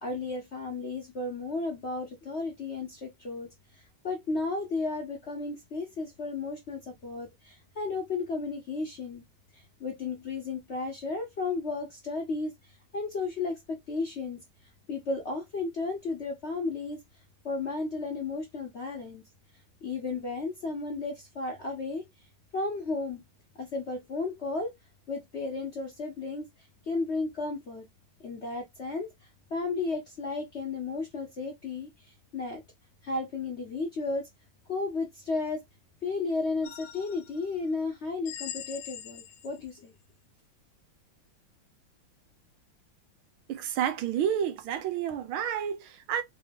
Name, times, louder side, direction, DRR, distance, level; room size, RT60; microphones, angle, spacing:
voice 1, 0.0-3.5 4.0-9.2 9.5-12.5 12.9-14.4 14.9-17.0 17.4-19.2 19.8-22.0 22.5-23.2 23.5-24.7 25.1-26.5 26.9-27.8 28.2-29.1 29.5-31.9 32.3-32.6 33.0-34.3 34.7-35.6 36.0-39.9, left 3 dB, 50° left, 0.8 m, -33 dB
sound 1, 36.6-37.4 38.2-39.7, left 10 dB, 75° left, 0.9 m, -42 dB
voice 2, 43.5-46.2, right 9 dB, 85° right, 1.5 m, -30 dB
3.9 x 2.8 x 3.5 m
omnidirectional pair, 2.2 m